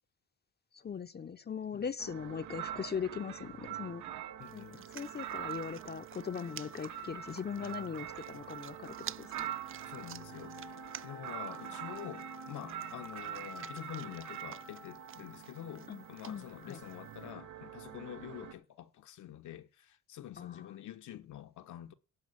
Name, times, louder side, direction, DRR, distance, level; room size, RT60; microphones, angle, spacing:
voice 1, 0.7-4.0 4.5-9.5 15.9-16.8 20.4-20.7, left 7 dB, 35° left, 0.7 m, -40 dB
sound 1, 2.0-18.5, right 5 dB, 65° right, 2.1 m, -49 dB
sound 2, 2.4-4.5 5.0-10.1 10.8-12.4 12.7-14.6, right 12 dB, 85° right, 1.1 m, -44 dB
voice 2, 4.4-4.8 9.8-10.7 11.0-21.9, left 12 dB, 75° left, 1.2 m, -47 dB
sound 3, 4.4-17.3, right 10 dB, 45° right, 0.5 m, -52 dB
11.5 x 5.0 x 8.4 m
cardioid pair, 90°, 30 cm